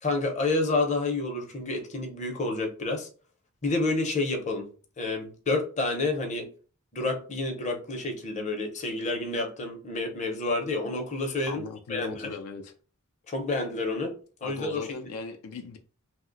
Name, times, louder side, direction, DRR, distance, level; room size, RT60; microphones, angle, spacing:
voice 1, 0.0-3.1 3.6-4.6 5.0-6.5 6.9-12.3 13.3-14.1 14.4-14.8, left 2 dB, 30° left, 0.6 m, -29 dB
voice 2, 11.5-12.7 14.4-15.8, left 4 dB, 85° left, 0.4 m, -38 dB
2.7 x 2.1 x 3.8 m
head